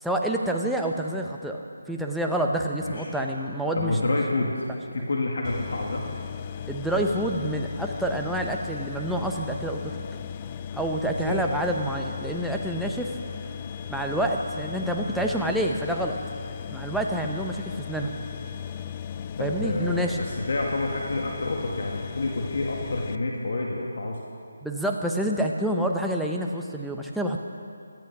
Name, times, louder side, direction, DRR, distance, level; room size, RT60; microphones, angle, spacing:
voice 1, 0.0-4.0 4.7-4.8 6.7-9.9 10.7-13.2 13.9-16.2 16.7-18.2 19.4-20.2 24.6-27.4, right 1 dB, ahead, 0 dB, 0.7 m, -28 dB
voice 2, 2.8-3.1 3.8-4.6 4.9-6.0 11.1-11.4 19.4-24.2, left 2 dB, 60° left, -1 dB, 2.0 m, -28 dB
sound 1, 5.4-23.2, left 8 dB, 25° left, 0.4 m, -37 dB
17.5 x 13.0 x 6.0 m, 2.4 s
figure-of-eight pair, 170°, 0 cm